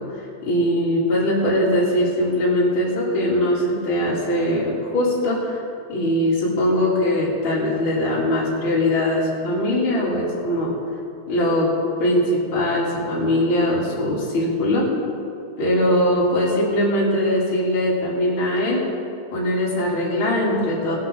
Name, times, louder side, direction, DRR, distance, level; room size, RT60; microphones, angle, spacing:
voice 1, 0.0-5.6 5.9-10.7 11.3-11.7 12.0-14.9 15.6-18.8 19.3-20.9, left 1 dB, 35° left, -7 dB, 3.4 m, -21 dB
21.5 x 7.9 x 3.9 m, 2.7 s
omnidirectional pair, 4.6 m